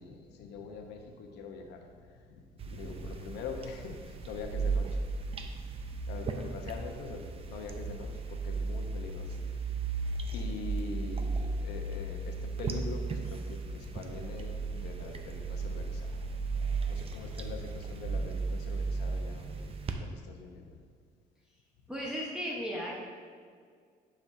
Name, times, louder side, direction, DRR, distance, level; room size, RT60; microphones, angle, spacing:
voice 1, 0.0-1.8 2.3-2.4 2.7-4.9 6.1-9.4 10.3-16.2 16.9-19.7 20.0-20.7, left 4 dB, 80° left, 3 dB, 0.9 m, -43 dB
sound 1, 2.6-19.9, right 4 dB, 35° right, 0.6 m, -35 dB
voice 2, 21.9-23.0, equal, 5° right, -5 dB, 1.0 m, -35 dB
9.9 x 5.5 x 2.7 m, 2.1 s
cardioid pair, 110°, 17 cm